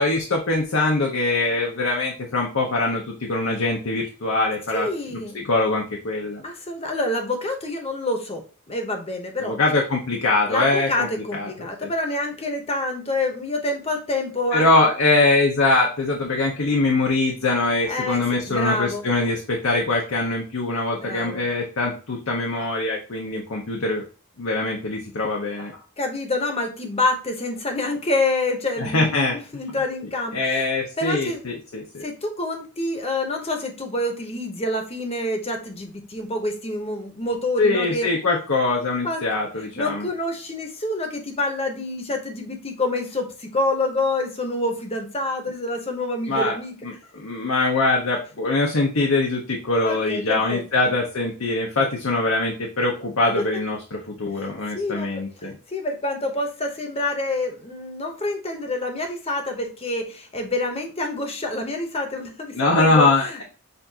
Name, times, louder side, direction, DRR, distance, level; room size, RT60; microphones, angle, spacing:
voice 1, 0.0-6.4 9.4-11.9 14.5-24.0 24.4-25.7 28.8-29.4 30.3-32.0 37.6-40.1 46.3-46.6 46.8-55.6 62.5-63.4, left 2 dB, 65° left, 0 dB, 0.8 m, -23 dB
voice 2, 4.7-5.4 6.4-9.5 10.5-14.7 17.9-19.0 20.9-21.4 26.0-30.7 31.0-31.4 32.0-38.1 39.0-39.2 39.6-46.7 48.4-48.5 49.8-50.6 53.4-53.5 54.3-63.4, left 2 dB, 25° left, 3 dB, 0.9 m, -27 dB
6.7 x 2.6 x 2.8 m, 0.37 s
head